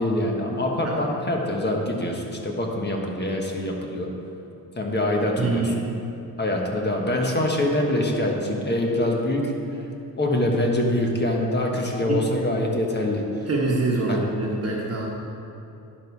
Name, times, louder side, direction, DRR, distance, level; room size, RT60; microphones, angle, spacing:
voice 1, 0.0-4.1 4.8-5.9 6.4-9.5 10.2-13.2 14.1-14.2, left 1 dB, 25° left, 1 dB, 1.3 m, -24 dB
voice 2, 5.3-5.7 12.1-12.2 13.5-15.1, right 3 dB, 40° right, -3 dB, 1.3 m, -25 dB
10.5 x 5.5 x 4.7 m, 2.9 s
cardioid pair, 90°, 38 cm